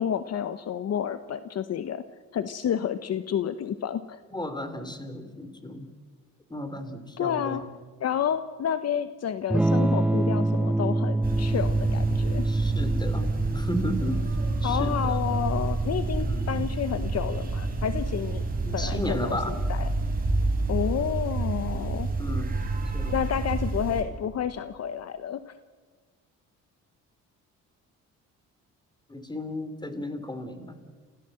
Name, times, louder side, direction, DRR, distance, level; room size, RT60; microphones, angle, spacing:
voice 1, 0.0-2.0 2.3-4.2 7.2-7.6 8.0-12.4 14.6-18.5 18.7-19.9 20.7-22.1 23.1-25.5, left 9 dB, 55° left, 12 dB, 0.9 m, -30 dB
voice 2, 4.3-5.9 6.5-7.6 12.4-14.3 14.6-15.2 16.2-16.7 18.6-19.6 22.2-23.1 29.1-30.8, left 1 dB, 15° left, 10 dB, 3.1 m, -34 dB
Electric guitar / Strum, 9.5-19.3, right 2 dB, 5° right, 0.6 m, -27 dB
sound 1, 11.2-24.0, right 3 dB, 30° right, 4.1 m, -29 dB
29.0 x 16.0 x 7.8 m, 1.4 s
cardioid pair, 90°, 30 cm